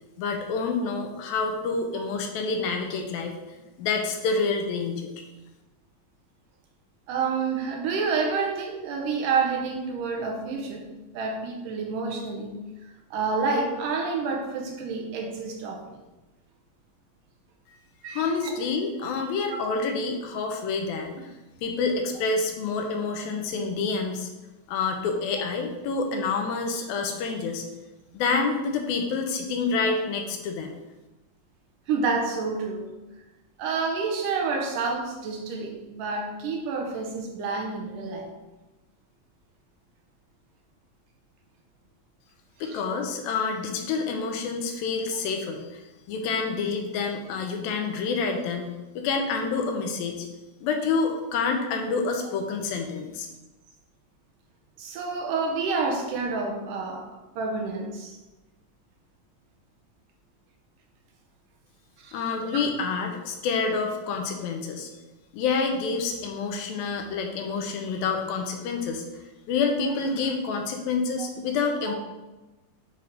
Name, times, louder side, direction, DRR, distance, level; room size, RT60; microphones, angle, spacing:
voice 1, 0.2-3.4 3.8-5.1 18.1-21.3 21.6-24.3 24.7-27.7 28.1-30.7 42.6-45.8 46.1-50.3 50.6-53.3 62.1-64.9 65.3-71.9, left 4 dB, 85° left, 3 dB, 2.6 m, -28 dB
voice 2, 7.1-10.9 11.1-12.6 13.1-16.0 18.0-18.6 19.0-19.1 19.5-19.7 31.9-33.0 33.6-38.3 42.6-42.8 54.8-57.1 57.4-58.1 62.0-62.1 62.4-62.6 71.2-71.3 71.9-72.0, right 4 dB, 75° right, 2 dB, 2.3 m, -29 dB
9.3 x 3.5 x 4.0 m, 1.1 s
omnidirectional pair, 4.1 m